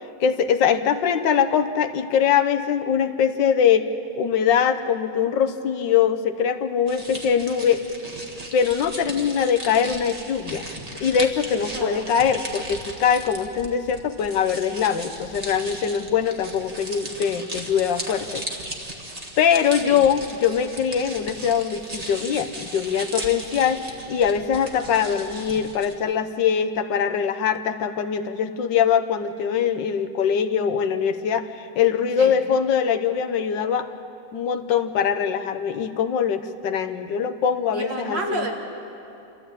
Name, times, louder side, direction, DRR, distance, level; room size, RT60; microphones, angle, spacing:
voice 1, 0.2-3.9 4.2-7.8 8.5-10.6 11.0-18.4 19.4-33.9 34.3-38.5, left 7 dB, 85° left, 9 dB, 1.6 m, -22 dB
sound 1, 6.9-25.9, right 1 dB, 20° right, 1.8 m, -36 dB
voice 2, 37.7-38.5, right 1 dB, 75° right, 1 dB, 3.0 m, -29 dB
28.0 x 13.5 x 8.7 m, 2.9 s
omnidirectional pair, 1.9 m